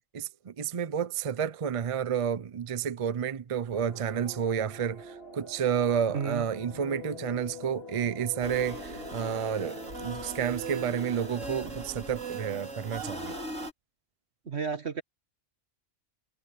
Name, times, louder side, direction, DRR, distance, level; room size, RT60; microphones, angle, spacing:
voice 1, 0.1-13.4, right 8 dB, 40° right, 0.4 m, -30 dB
sound 1, 3.7-11.7, left 2 dB, 50° left, 3.0 m, -44 dB
voice 2, 6.1-6.5 14.5-15.0, right 6 dB, 55° right, 2.0 m, -32 dB
sound 2, 8.4-13.7, right 3 dB, 80° right, 4.4 m, -39 dB
omnidirectional pair, 1.3 m